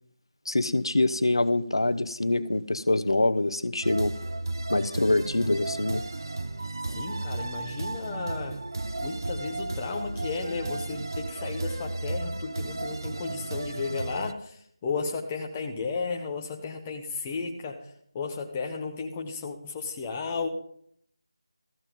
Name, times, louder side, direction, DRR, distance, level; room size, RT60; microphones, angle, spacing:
voice 1, 0.5-4.1 4.7-6.0, left 2 dB, 80° left, 14 dB, 0.7 m, -25 dB
sound 1, 3.8-14.3, right 2 dB, 50° right, 0.5 m, -34 dB
voice 2, 6.9-8.6 9.0-17.9 18.1-20.5, left 4 dB, 10° left, 1 dB, 0.4 m, -34 dB
14.0 x 5.4 x 7.3 m, 0.65 s
figure-of-eight pair, 175°, 3 cm